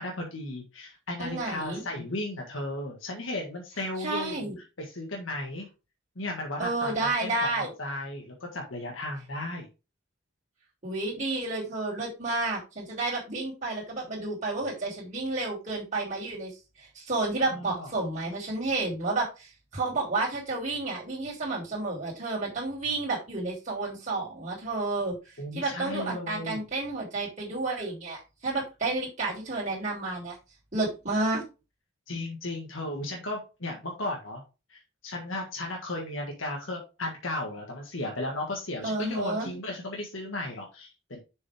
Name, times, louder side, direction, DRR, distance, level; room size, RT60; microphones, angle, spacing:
voice 1, 0.0-4.5 4.8-5.7 6.1-9.7 17.5-17.9 25.4-26.6 32.1-34.4 34.7-41.2, left 1 dB, 75° left, 0 dB, 1.6 m, -35 dB
voice 2, 1.2-1.8 4.0-4.5 6.6-7.7 10.8-16.5 16.8-25.2 25.5-30.4 30.7-31.4 38.8-39.5, right 2 dB, 35° right, -6 dB, 3.1 m, -31 dB
6.8 x 5.3 x 3.5 m, 0.29 s
head